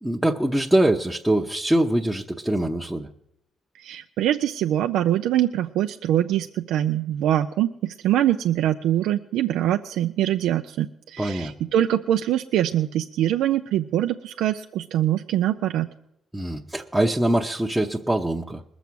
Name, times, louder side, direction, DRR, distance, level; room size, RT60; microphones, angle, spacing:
voice 1, 0.0-3.1 11.2-11.5 16.3-18.6, right 1 dB, 5° right, -2 dB, 0.8 m, -23 dB
voice 2, 3.7-15.9, right 12 dB, 85° right, 7 dB, 0.4 m, -23 dB
21.0 x 7.0 x 6.2 m, 0.80 s
cardioid pair, 90°, 0 cm